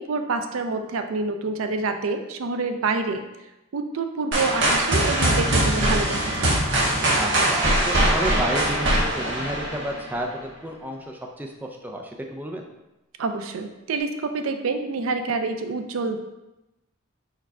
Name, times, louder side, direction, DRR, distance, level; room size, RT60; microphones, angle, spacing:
voice 1, 0.0-3.2 3.7-6.5 13.2-16.2, right 4 dB, 80° right, 7 dB, 0.4 m, -27 dB
sound 1, 4.3-10.2, right 1 dB, 60° right, 0.9 m, -22 dB
voice 2, 7.2-12.6, right 1 dB, 10° right, 1 dB, 0.3 m, -31 dB
4.6 x 2.2 x 4.6 m, 0.97 s
head